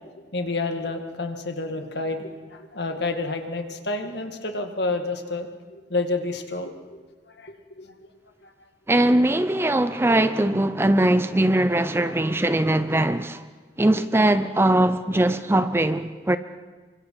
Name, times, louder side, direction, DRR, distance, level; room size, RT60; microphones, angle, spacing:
voice 1, 0.3-8.1 8.4-8.5, left 3 dB, 60° left, 2.1 m, -30 dB
voice 2, 8.9-13.4 13.8-16.4, right 1 dB, 15° right, 0.6 m, -21 dB
28.0 x 24.5 x 4.8 m
head